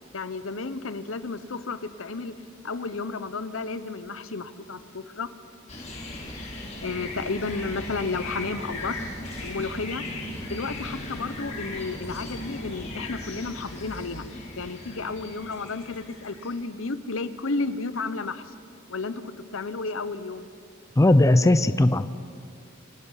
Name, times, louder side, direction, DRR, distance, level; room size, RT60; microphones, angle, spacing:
voice 1, 0.1-2.3 2.6-5.3 6.8-9.0 9.4-10.0 10.5-14.2 14.6-18.4 18.9-19.2 19.5-20.5, left 3 dB, 80° left, 13 dB, 1.0 m, -32 dB
sound 1, 5.7-16.6, left 1 dB, 35° left, 4.3 m, -37 dB
voice 2, 21.0-22.2, left 1 dB, 15° left, 12 dB, 0.4 m, -18 dB
26.5 x 19.0 x 5.8 m, 2.3 s
head